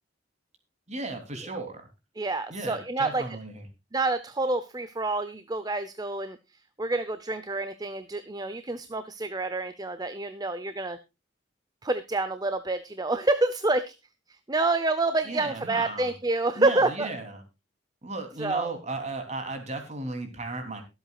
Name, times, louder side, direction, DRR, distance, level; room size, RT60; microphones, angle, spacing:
voice 1, 0.9-1.9 2.5-3.6 15.2-16.1 16.5-17.4 18.0-20.8, right 2 dB, 35° right, 6 dB, 3.2 m, -35 dB
voice 2, 2.2-3.2 3.9-6.4 6.8-11.0 11.8-13.9 14.5-17.1 18.4-18.7, right 2 dB, 20° right, 11 dB, 0.7 m, -28 dB
23.0 x 8.1 x 2.4 m, 0.26 s
head